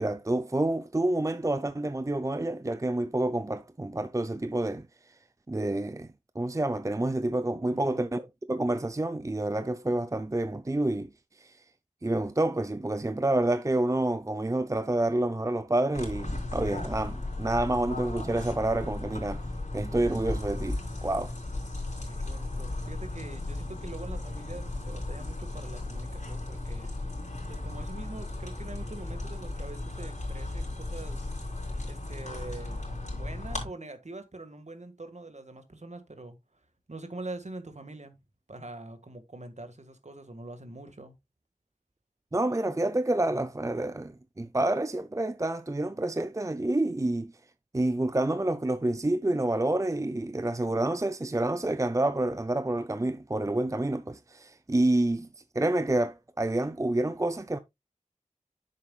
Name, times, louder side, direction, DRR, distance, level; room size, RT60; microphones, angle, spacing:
voice 1, 0.0-4.8 5.5-6.1 6.4-8.2 8.5-11.1 11.4-11.6 12.0-19.4 19.7-21.3 42.3-47.3 47.7-55.3 55.5-57.6, right 1 dB, 25° right, 0.5 m, -28 dB
sound 1, 15.9-33.7, left 2 dB, 60° left, 3.9 m, -35 dB
voice 2, 22.0-26.9 27.5-31.3 31.8-32.9 33.1-36.6 36.9-38.2 38.5-41.2, right 2 dB, 60° right, 1.7 m, -44 dB
10.0 x 7.5 x 2.3 m
wide cardioid pair, 50°, 14 cm